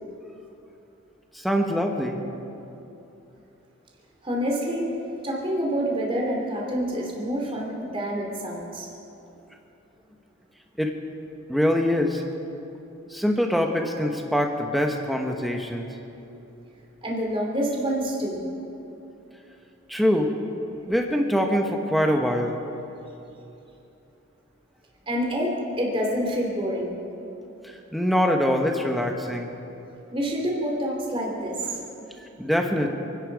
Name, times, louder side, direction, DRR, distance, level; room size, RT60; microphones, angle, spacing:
voice 1, 1.3-2.2 10.8-11.0 11.5-12.2 13.1-16.0 19.9-20.3 20.9-22.6 27.6-29.5 32.4-32.9, equal, ahead, 2 dB, 1.2 m, -24 dB
voice 2, 4.2-4.9 5.2-8.9 17.0-18.5 25.1-27.0 30.1-31.8, equal, 25° right, -1 dB, 2.9 m, -27 dB
28.5 x 10.5 x 4.8 m, 2.9 s
head